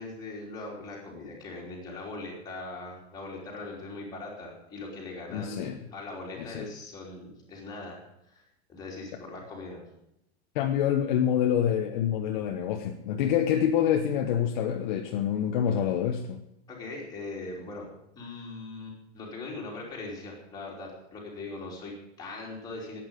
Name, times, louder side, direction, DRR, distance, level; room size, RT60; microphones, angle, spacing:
voice 1, 0.0-8.0 8.3-8.4 8.7-9.8 16.7-17.9 18.1-23.0, left 3 dB, 10° left, -3 dB, 3.4 m, -40 dB
voice 2, 5.3-5.8 6.5-6.7 10.5-16.4, left 9 dB, 45° left, 3 dB, 1.1 m, -26 dB
11.5 x 9.0 x 9.1 m, 0.83 s
supercardioid pair, 180°, 33 cm